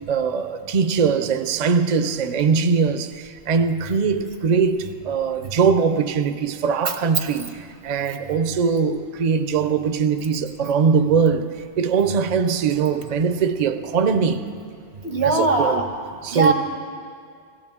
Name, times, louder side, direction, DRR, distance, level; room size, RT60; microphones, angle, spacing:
voice 1, 0.0-14.4 15.2-15.8 16.2-16.5, right 6 dB, 50° right, 0.6 m, -21 dB
voice 2, 15.0-15.8 16.3-16.5, right 3 dB, 90° right, 1.4 m, -20 dB
17.0 x 17.0 x 3.6 m
omnidirectional pair, 1.1 m